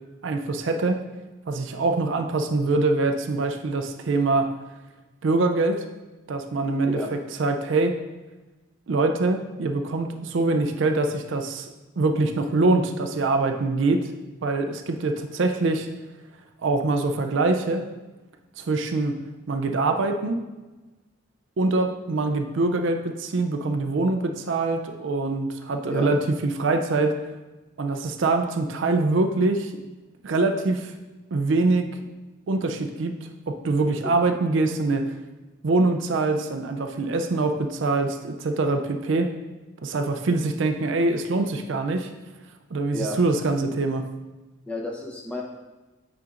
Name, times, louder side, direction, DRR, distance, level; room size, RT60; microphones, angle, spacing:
voice 1, 0.2-1.0 1.5-4.5 5.2-5.8 6.3-7.0 7.4-8.0 8.9-14.1 14.4-15.9 16.6-17.8 18.6-19.2 19.5-20.4 21.6-27.2 27.8-29.7 30.2-30.9 31.3-31.9 32.5-33.1 33.5-35.1 35.6-39.3 39.8-42.1 42.7-44.1, right 3 dB, 60° right, 5 dB, 0.4 m, -24 dB
voice 2, 44.7-45.4, left 1 dB, 5° left, -1 dB, 0.8 m, -31 dB
8.4 x 5.1 x 2.5 m, 1.1 s
head